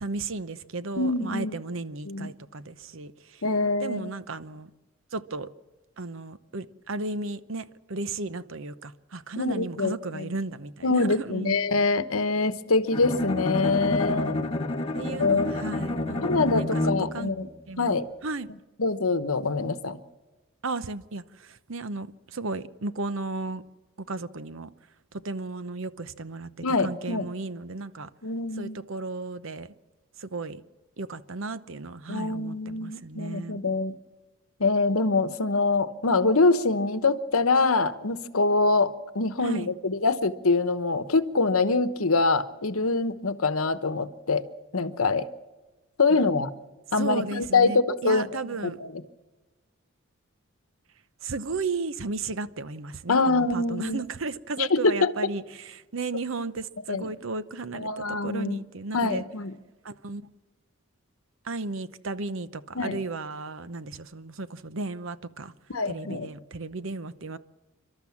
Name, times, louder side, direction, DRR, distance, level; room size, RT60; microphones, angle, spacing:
voice 1, 0.0-3.4 3.8-4.7 5.1-5.5 6.0-11.6 14.9-16.7 17.1-17.3 17.7-18.5 20.6-23.6 24.1-24.7 25.2-28.1 28.6-29.7 30.2-30.6 31.0-33.6 39.4-39.7 46.1-46.2 47.0-48.8 51.2-59.2 59.8-60.3 61.4-65.5 65.9-67.4, right 3 dB, 65° right, 0.8 m, -34 dB
voice 2, 1.0-1.5 2.1-2.3 3.4-4.1 9.4-10.2 10.8-14.4 15.2-15.5 16.2-17.5 17.8-18.0 18.8-20.0 26.6-27.3 28.2-28.8 32.1-33.9 34.6-44.5 44.7-45.2 46.0-46.5 46.9-48.9 53.1-54.0 54.6-55.1 56.9-57.1 57.7-58.6 58.9-59.5 62.7-63.0 65.7-66.3, left 3 dB, 75° left, 1.1 m, -24 dB
Bowed string instrument, 12.9-17.3, left 1 dB, 25° left, 1.4 m, -29 dB
29.0 x 12.5 x 7.2 m
head